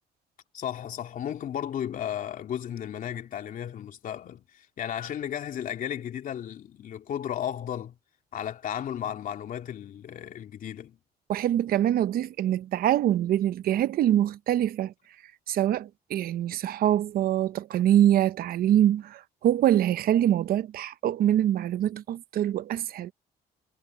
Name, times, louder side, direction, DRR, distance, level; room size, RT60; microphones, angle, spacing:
voice 1, 0.5-7.9 8.3-11.0, left 10 dB, 55° left, 2.9 m, -34 dB
voice 2, 11.3-14.9 15.5-23.1, right 11 dB, 60° right, 0.9 m, -24 dB
cardioid pair, 110°, 17 cm